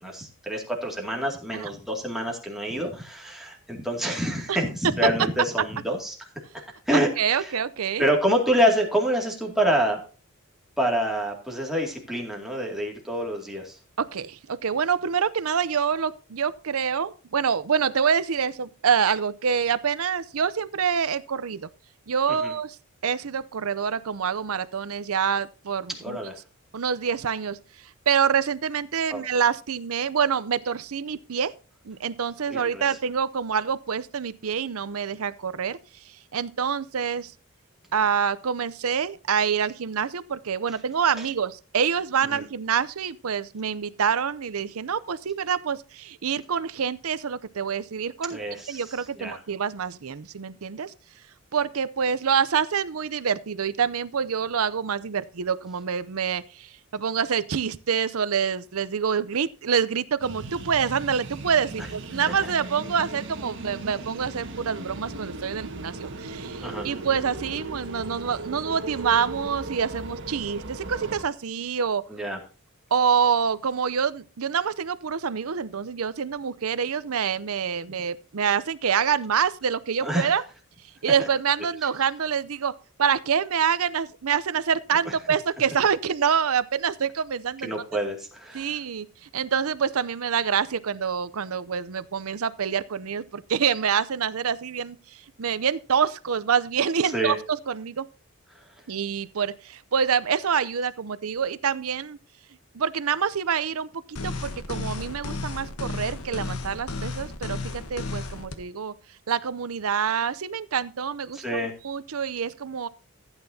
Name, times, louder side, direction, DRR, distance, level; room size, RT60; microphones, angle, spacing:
voice 1, 0.0-6.1 6.9-7.1 7.4-7.5 8.0-10.0 10.8-13.8 22.4-22.5 26.0-26.3 29.1-29.2 32.5-32.8 41.2-41.3 42.3-42.4 48.3-48.8 49.2-49.4 61.8-61.9 62.4-62.5 66.6-66.9 72.1-72.4 80.0-80.3 85.1-85.2 87.6-88.8 97.1-97.4 111.3-111.7, equal, ahead, 2.3 m, -27 dB
voice 2, 6.9-8.0 14.0-21.7 22.1-22.8 23.0-26.2 26.7-27.6 28.1-31.5 31.9-35.8 36.3-37.3 37.9-48.4 48.7-50.9 51.5-72.0 72.9-80.4 81.0-82.7 83.0-87.7 88.5-89.1 89.3-95.0 95.4-98.1 98.9-102.2 102.7-108.9 109.3-111.4 111.8-112.9, right 7 dB, 75° right, 0.6 m, -26 dB
sound 1, 60.2-71.2, right 2 dB, 55° right, 1.6 m, -37 dB
sound 2, 104.2-108.6, left 3 dB, 80° left, 1.2 m, -33 dB
15.0 x 9.0 x 2.8 m
head